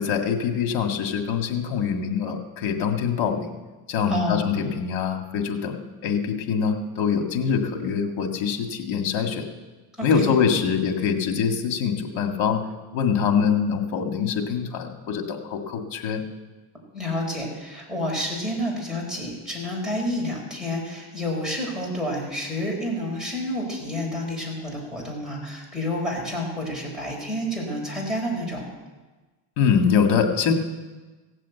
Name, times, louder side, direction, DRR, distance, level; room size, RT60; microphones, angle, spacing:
voice 1, 0.0-3.5 3.9-9.4 10.0-12.6 12.9-16.2 29.6-30.5, left 6 dB, 70° left, 5 dB, 2.0 m, -24 dB
voice 2, 4.1-4.4 10.0-10.3 16.9-28.6, left 1 dB, ahead, -3 dB, 4.6 m, -29 dB
16.5 x 7.6 x 8.1 m, 1.2 s
cardioid pair, 135°, 48 cm